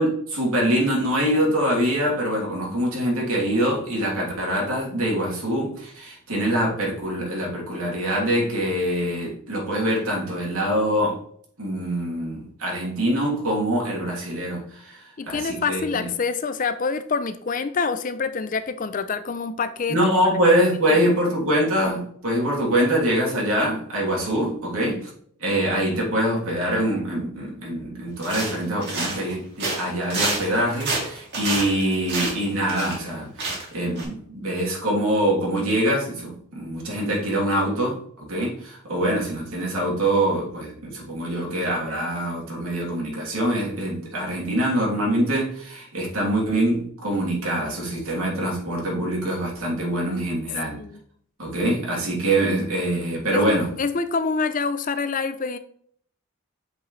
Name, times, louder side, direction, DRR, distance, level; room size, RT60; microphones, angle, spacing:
voice 1, 0.0-11.2 11.6-16.1 19.9-25.1 25.4-50.8 51.4-53.7, right 1 dB, 85° right, -4 dB, 2.9 m, -24 dB
voice 2, 15.2-20.0 20.9-21.2 50.8-51.0 53.3-55.6, left 5 dB, 40° left, 11 dB, 0.4 m, -26 dB
sound 1, 28.2-29.3 29.6-33.1 33.4-33.7 34.0-34.1, right 3 dB, 50° right, 2.4 m, -28 dB
7.9 x 4.8 x 3.1 m, 0.62 s
head